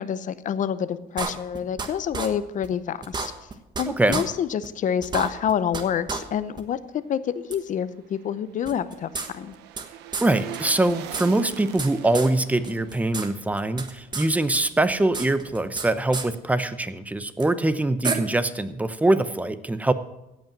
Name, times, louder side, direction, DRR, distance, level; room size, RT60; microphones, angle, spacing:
voice 1, 0.0-3.3 3.8-9.6, left 8 dB, 50° left, 14 dB, 0.7 m, -27 dB
sound 1, 1.2-1.9 2.1-2.3 2.6-2.7 3.0-3.8 4.1-4.2 4.6-4.7 5.0-5.8 6.1-6.2 6.6-6.7 7.5-7.6 8.7-9.9 10.1-10.3 10.5-10.6 10.9-11.9 12.1-12.3 12.6-13.3 13.5-14.3 14.5-15.9 16.1-16.3 17.4-17.5 18.0-18.1, right 4 dB, 25° right, 1.2 m, -30 dB
voice 2, 3.9-4.2 10.2-19.9, right 2 dB, 10° right, 12 dB, 0.7 m, -23 dB
sound 2, 7.7-14.9 15.2-15.3, right 11 dB, 85° right, 0.9 m, -43 dB
16.0 x 5.5 x 7.3 m, 0.94 s
cardioid pair, 110°, 17 cm